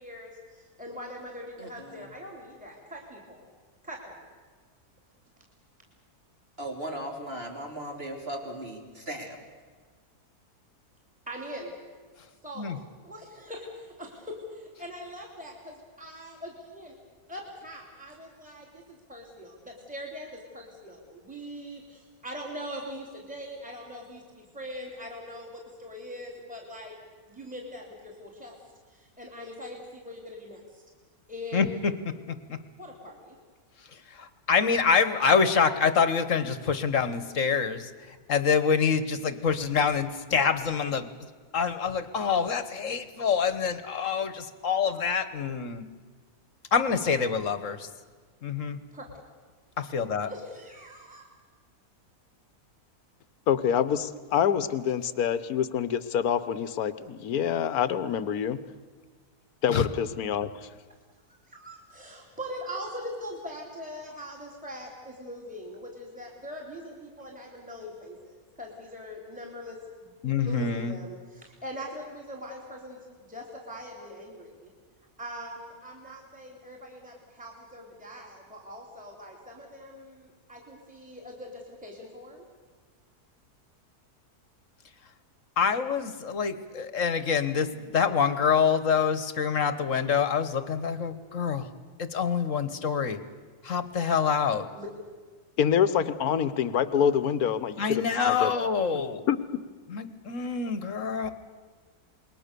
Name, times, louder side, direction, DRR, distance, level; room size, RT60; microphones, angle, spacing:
voice 1, 0.0-3.4 3.8-4.2 11.3-11.8 12.4-12.7 13.0-16.9 17.3-27.0 27.3-28.6 28.9-30.8 31.3-31.8 32.8-33.4 48.7-49.0 50.3-51.3 61.3-70.1 70.4-74.7 75.2-82.4 94.7-94.9, equal, 5° right, -2 dB, 3.5 m, -42 dB
voice 2, 1.6-2.1 6.6-9.4, right 1 dB, 40° right, 1 dB, 3.8 m, -37 dB
voice 3, 31.5-32.6 34.1-37.9 38.3-41.1 41.5-45.9 46.7-47.9 48.4-48.8 49.8-50.3 59.7-59.9 70.2-71.0 85.6-91.7 92.0-93.2 93.6-94.7 97.8-99.2 99.9-101.3, left 6 dB, 55° left, 12 dB, 1.6 m, -26 dB
voice 4, 53.5-58.6 59.6-60.5 95.6-98.5 98.9-99.0 99.3-99.4, left 8 dB, 75° left, 14 dB, 1.4 m, -26 dB
27.5 x 21.5 x 6.9 m, 1.5 s
omnidirectional pair, 1.6 m